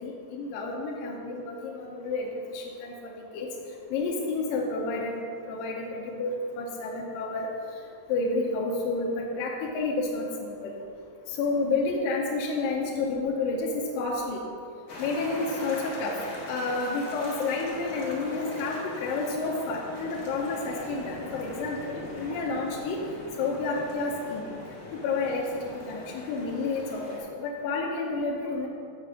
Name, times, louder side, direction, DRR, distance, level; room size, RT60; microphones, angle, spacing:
voice 1, 0.0-3.5 3.9-5.2 5.5-7.5 8.1-10.7 11.3-14.4 15.0-16.2 16.5-23.0 23.4-24.4 24.9-28.7, left 3 dB, 85° left, -1 dB, 2.4 m, -30 dB
sound 1, 14.9-27.2, left 1 dB, 55° left, 0.9 m, -41 dB
6.6 x 5.9 x 7.2 m, 2.5 s
omnidirectional pair, 4.0 m